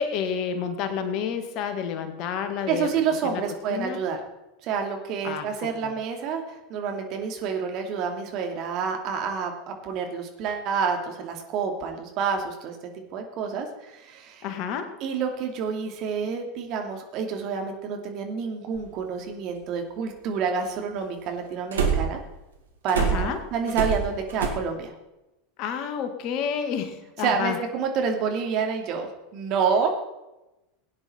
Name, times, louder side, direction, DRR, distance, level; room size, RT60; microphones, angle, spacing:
voice 1, 0.0-2.9 3.2-3.4 3.7-4.0 5.2-5.5 5.8-5.9 14.4-15.0 23.0-23.4 25.6-27.6, left 7 dB, 50° left, 7 dB, 1.9 m, -29 dB
voice 2, 2.7-4.2 4.6-12.8 13.1-14.4 15.0-22.2 22.8-24.9 27.2-29.9, right 6 dB, 50° right, 3 dB, 2.6 m, -28 dB
sound 1, 18.8-18.9 21.7-22.3 22.9-24.5, right 6 dB, 75° right, 2.2 m, -25 dB
17.5 x 9.7 x 4.4 m, 0.97 s
figure-of-eight pair, 80°, 0 cm